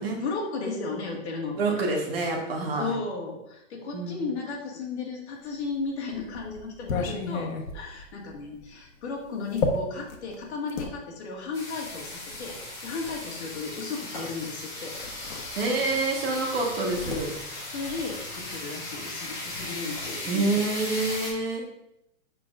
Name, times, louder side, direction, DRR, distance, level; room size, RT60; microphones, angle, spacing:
voice 1, 0.0-1.8 2.8-12.6 12.8-15.0 15.7-16.0 17.7-20.6, left 4 dB, 55° left, -2 dB, 2.0 m, -35 dB
voice 2, 1.6-2.9 3.9-4.2 15.6-17.3 20.3-21.7, right 3 dB, 45° right, 0 dB, 1.5 m, -27 dB
sound 1, 5.6-11.0 11.8-13.2 14.4-14.6 14.9-16.0 16.3-18.5, left 4 dB, 85° left, 1.3 m, -34 dB
sound 2, 11.5-21.3, left 2 dB, 15° left, 1.9 m, -37 dB
7.4 x 5.8 x 2.5 m, 0.83 s
hypercardioid pair, 175°, 39 cm